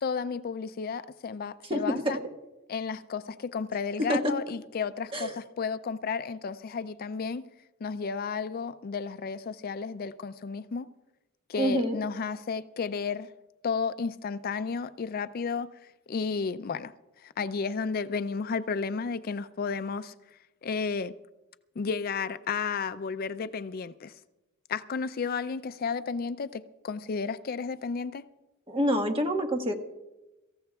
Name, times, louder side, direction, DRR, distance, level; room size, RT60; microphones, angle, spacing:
voice 1, 0.0-2.2 2.7-7.4 7.8-10.9 11.5-13.3 13.6-21.1 21.8-24.2 24.7-28.2, left 5 dB, 45° left, 0.4 m, -33 dB
voice 2, 1.7-2.2 4.1-4.2 5.1-5.3 11.6-12.0 28.7-29.7, equal, 25° right, 1.4 m, -27 dB
24.5 x 15.0 x 2.3 m
head